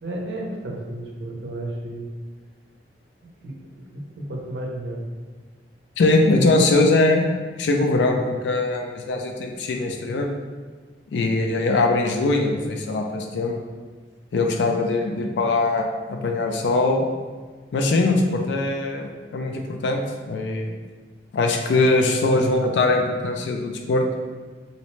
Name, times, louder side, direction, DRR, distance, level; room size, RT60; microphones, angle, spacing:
voice 1, 0.0-2.1 3.4-5.0, right 1 dB, 75° right, -1 dB, 0.5 m, -33 dB
voice 2, 6.0-7.2 7.6-10.3 11.1-13.6 14.3-17.1 17.7-20.7 21.3-24.0, left 2 dB, 80° left, 3 dB, 0.3 m, -21 dB
2.6 x 2.0 x 3.0 m, 1.4 s
head